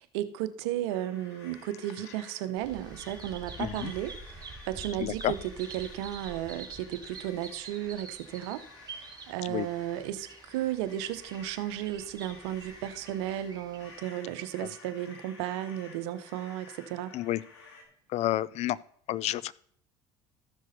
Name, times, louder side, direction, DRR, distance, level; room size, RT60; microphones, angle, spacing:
voice 1, 0.0-17.1, right 12 dB, 75° right, 12 dB, 0.8 m, -34 dB
sound 1, 0.9-17.8, left 3 dB, 90° left, 2.3 m, -53 dB
Chink clink, 1.3-6.5, left 2 dB, 5° left, 4.2 m, -61 dB
Bird vocalization bird call bird song, 2.6-14.0, right 4 dB, 30° right, 2.7 m, -47 dB
voice 2, 3.6-3.9 5.0-5.3 9.4-9.7 14.6-14.7 17.1-17.4 18.1-18.8 19.1-19.5, left 14 dB, 50° left, 21 dB, 0.4 m, -30 dB
13.5 x 6.3 x 4.0 m, 0.63 s
hypercardioid pair, 75°, 14 cm